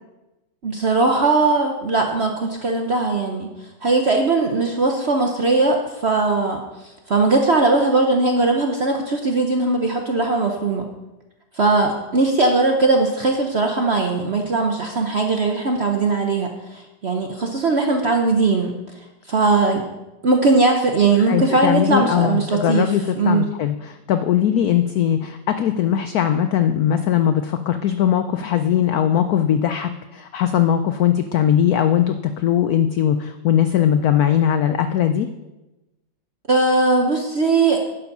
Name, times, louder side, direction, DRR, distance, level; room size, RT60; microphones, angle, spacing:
voice 1, 0.6-3.5 3.8-6.6 7.1-10.9 11.5-18.7 19.3-19.8 20.2-23.5 36.5-37.8, right 3 dB, 50° right, 3 dB, 0.7 m, -19 dB
voice 2, 21.3-35.3, left 10 dB, 80° left, 9 dB, 0.8 m, -20 dB
10.5 x 7.1 x 5.4 m, 1.0 s
omnidirectional pair, 2.1 m